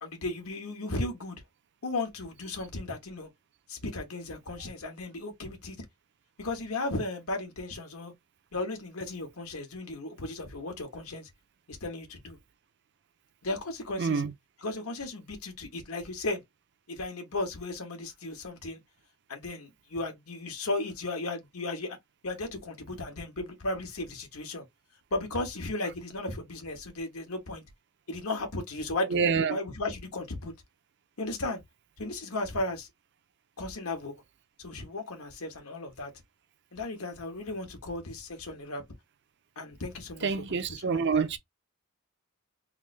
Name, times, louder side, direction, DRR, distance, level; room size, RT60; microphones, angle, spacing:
voice 1, 0.0-1.4 1.8-3.3 3.7-5.8 6.4-8.1 8.5-11.3 11.7-12.4 13.4-14.2 14.6-16.4 16.9-18.8 19.3-22.0 22.2-24.6 25.1-27.6 28.1-30.5 31.2-31.6 32.0-32.9 33.6-34.1 34.6-36.1 36.7-38.8 39.6-41.3, left 2 dB, 90° left, 1.3 m, -35 dB
voice 2, 14.0-14.3 29.1-29.6 40.2-41.4, right 5 dB, 55° right, 0.5 m, -27 dB
3.5 x 2.6 x 3.2 m
head